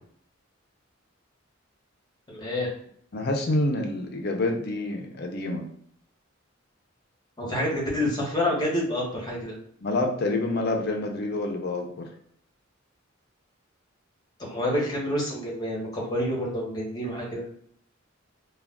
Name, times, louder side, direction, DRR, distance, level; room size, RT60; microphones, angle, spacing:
voice 1, 2.3-2.7 7.4-9.5 14.4-17.4, left 1 dB, 20° left, -4 dB, 1.0 m, -28 dB
voice 2, 3.1-5.6 9.8-12.1, left 2 dB, 50° left, 2 dB, 0.5 m, -27 dB
2.3 x 2.3 x 3.5 m, 0.65 s
head